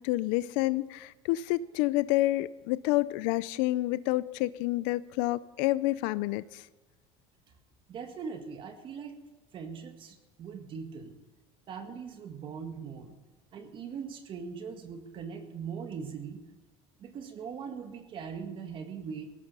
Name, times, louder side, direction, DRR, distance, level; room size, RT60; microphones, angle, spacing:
voice 1, 0.0-6.6, left 17 dB, 80° left, 17 dB, 0.5 m, -29 dB
voice 2, 7.9-9.2 9.5-11.1 11.7-13.2 13.5-16.4 17.0-19.3, right 6 dB, 40° right, 6 dB, 1.9 m, -40 dB
17.0 x 15.0 x 5.6 m, 1.2 s
cardioid pair, 145°, 13 cm